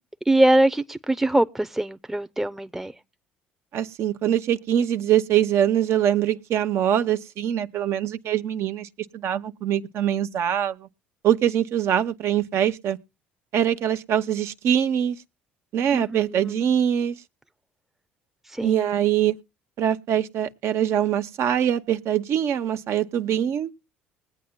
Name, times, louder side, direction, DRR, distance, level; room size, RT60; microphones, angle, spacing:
voice 1, 0.3-2.9 15.9-16.6 18.5-18.9, right 1 dB, 5° right, 0.6 m, -23 dB
voice 2, 3.7-10.9 11.2-13.0 13.5-15.2 15.7-17.1 18.6-19.4 19.8-23.7, right 10 dB, 60° right, 0.8 m, -23 dB
20.5 x 8.6 x 2.2 m
hypercardioid pair, 70°, 5 cm